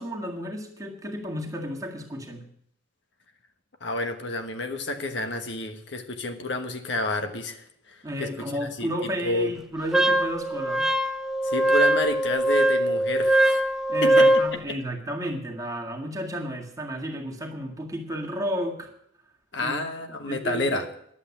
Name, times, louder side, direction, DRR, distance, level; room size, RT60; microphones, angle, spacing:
voice 1, 0.0-2.5 8.0-10.9 13.9-18.9 19.6-19.8 20.3-20.9, equal, 15° right, 0 dB, 1.9 m, -32 dB
voice 2, 3.8-8.9 9.2-9.5 11.4-13.7 14.0-14.3 19.5-20.9, left 2 dB, 65° left, 7 dB, 1.3 m, -30 dB
Wind instrument woodwind instrument, 9.9-14.5, right 1 dB, ahead, 0.6 m, -21 dB
11.5 x 8.1 x 8.3 m, 0.71 s
head